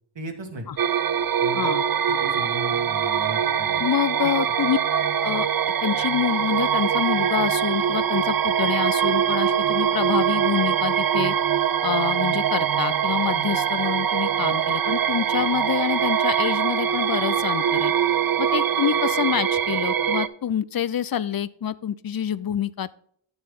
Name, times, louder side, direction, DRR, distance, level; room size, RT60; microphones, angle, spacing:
voice 1, 0.2-0.7 1.4-1.7 2.1-3.8 4.2-4.3, right 1 dB, 70° right, 3 dB, 1.7 m, -36 dB
sound 1, 0.8-20.3, right 9 dB, 50° right, 0.5 m, -23 dB
voice 2, 3.8-4.8 5.2-5.5 5.8-11.3 11.8-17.9 18.4-22.9, left 9 dB, 50° left, 18 dB, 0.5 m, -26 dB
9.6 x 7.0 x 3.7 m, 0.64 s
wide cardioid pair, 85°, 46 cm